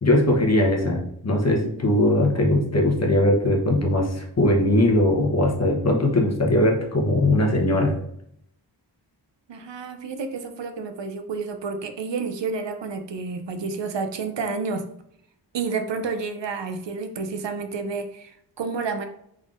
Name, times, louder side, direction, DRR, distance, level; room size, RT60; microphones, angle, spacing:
voice 1, 0.0-7.9, left 1 dB, 35° left, -1 dB, 0.9 m, -20 dB
voice 2, 9.5-14.8 15.5-19.1, right 4 dB, 75° right, 7 dB, 0.5 m, -30 dB
3.7 x 3.5 x 2.4 m, 0.72 s
wide cardioid pair, 60°, 44 cm